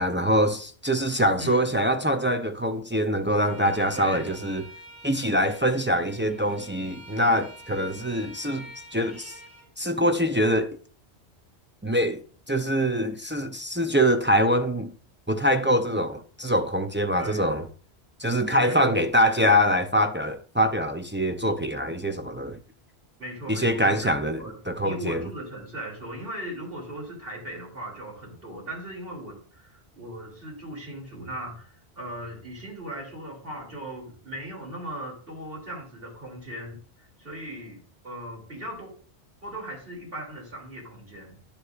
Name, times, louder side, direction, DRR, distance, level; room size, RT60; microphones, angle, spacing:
voice 1, 0.0-4.6 5.0-9.4 9.8-10.7 11.8-12.2 12.5-14.9 15.3-17.6 18.2-22.6 23.5-24.4 24.7-25.3, equal, 20° right, 0.3 m, -24 dB
voice 2, 1.4-1.7 3.9-4.4 17.2-17.4 18.5-19.1 23.2-24.6 24.8-38.9 39.4-41.4, right 1 dB, 60° right, 3.2 m, -38 dB
Bowed string instrument, 3.4-9.7, right 1 dB, 40° right, 3.5 m, -47 dB
10.0 x 9.7 x 2.5 m
omnidirectional pair, 1.1 m